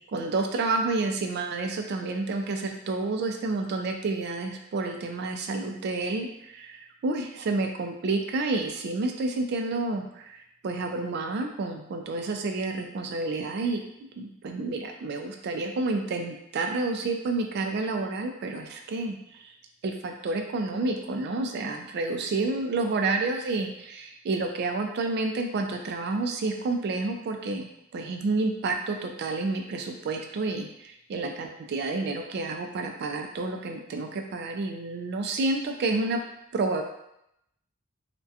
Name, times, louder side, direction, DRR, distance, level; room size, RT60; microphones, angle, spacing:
voice 1, 0.1-10.4 10.6-13.8 14.2-19.5 19.8-36.2 36.5-36.8, right 3 dB, 50° right, 4 dB, 0.3 m, -29 dB
2.3 x 2.1 x 2.6 m, 0.79 s
head